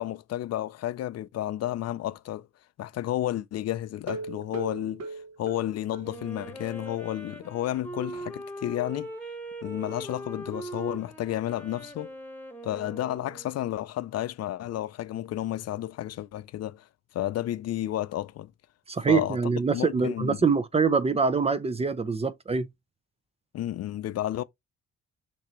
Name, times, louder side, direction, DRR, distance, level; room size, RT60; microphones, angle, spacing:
voice 1, 0.0-2.5 2.8-9.1 9.6-12.1 12.6-16.9 17.1-18.5 19.1-19.4 19.7-20.4 23.5-24.4, left 13 dB, 55° left, 0.4 m, -32 dB
sound 1, 4.0-6.5 6.9-7.0 7.3-7.4 7.8-7.9, right 3 dB, 55° right, 1.1 m, -39 dB
Wind instrument woodwind instrument, 6.0-13.7, right 1 dB, 5° left, 1.1 m, -41 dB
voice 2, 18.9-22.7, right 5 dB, 20° right, 0.4 m, -24 dB
5.9 x 2.9 x 2.9 m
cardioid pair, 90°, 30 cm